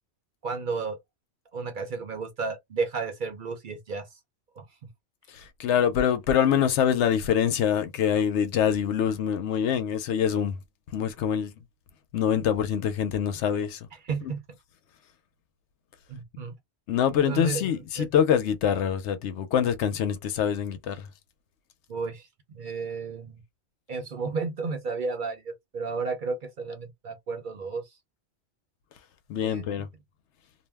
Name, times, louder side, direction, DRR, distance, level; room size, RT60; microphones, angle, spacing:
voice 1, 0.4-1.0 1.5-4.1 4.6-4.7 13.9-14.4 16.1-16.5 17.3-18.1 21.9-23.4 23.9-27.8 29.4-29.9, right 4 dB, 55° right, 0.7 m, -33 dB
voice 2, 5.3-10.5 10.9-11.5 12.1-13.8 16.9-21.1 29.3-29.9, left 8 dB, 80° left, 0.9 m, -25 dB
2.5 x 2.0 x 3.3 m
omnidirectional pair, 1.2 m